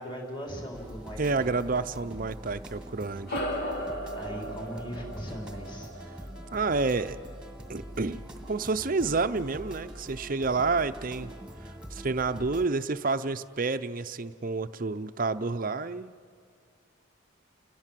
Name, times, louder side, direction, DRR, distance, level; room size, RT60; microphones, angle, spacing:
voice 1, 0.0-1.4 4.1-5.9, equal, 25° left, 0 dB, 4.5 m, -39 dB
sound 1, 0.7-12.7, equal, 5° right, 1.9 m, -44 dB
voice 2, 1.2-3.4 6.5-7.2 7.7-11.3 11.7-16.1, right 3 dB, 45° right, 11 dB, 0.7 m, -29 dB
sound 2, 3.3-8.0, equal, 50° left, 2.2 m, -37 dB
30.0 x 20.5 x 7.6 m, 2.3 s
head